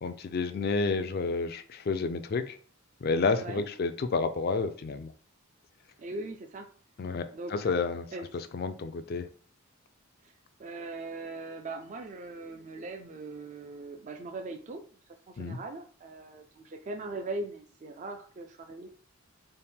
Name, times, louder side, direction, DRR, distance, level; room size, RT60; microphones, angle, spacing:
voice 1, 0.0-2.6 3.0-5.1 7.0-8.1 8.5-9.3 15.4-15.6, left 4 dB, 45° left, 9 dB, 0.4 m, -30 dB
voice 2, 3.3-3.6 6.0-6.7 7.3-7.7 8.1-8.3 10.2-10.3 10.6-14.8 15.3-18.9, right 2 dB, 35° right, 4 dB, 0.3 m, -40 dB
4.2 x 2.1 x 3.5 m, 0.44 s
head